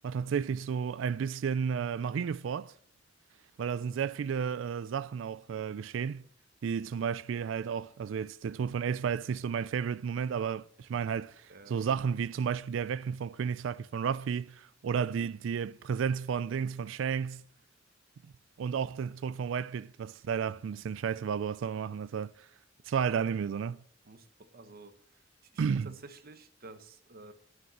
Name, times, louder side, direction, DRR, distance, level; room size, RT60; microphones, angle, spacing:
voice 1, 0.0-2.7 3.6-6.2 6.6-17.4 18.6-22.3 22.9-23.8 25.6-25.9, right 7 dB, 70° right, 0.3 m, -32 dB
voice 2, 24.0-25.0 25.5-27.3, right 2 dB, 50° right, 1.0 m, -51 dB
9.5 x 6.3 x 7.3 m
head